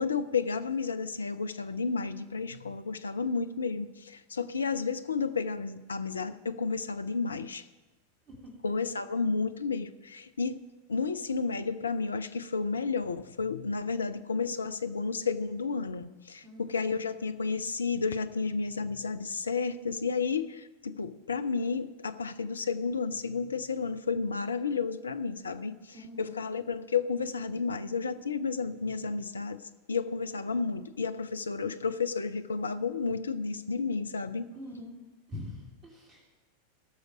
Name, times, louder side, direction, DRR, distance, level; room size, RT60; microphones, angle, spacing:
voice 1, 0.0-7.6 8.6-10.6 10.9-29.6 29.9-34.5, left 5 dB, 75° left, 12 dB, 0.6 m, -32 dB
voice 2, 16.4-16.8 25.9-26.3 34.5-34.9 35.3-36.2, left 1 dB, 30° right, -2 dB, 3.3 m, -43 dB
18.0 x 6.5 x 5.0 m, 1.1 s
figure-of-eight pair, 90°, 0 cm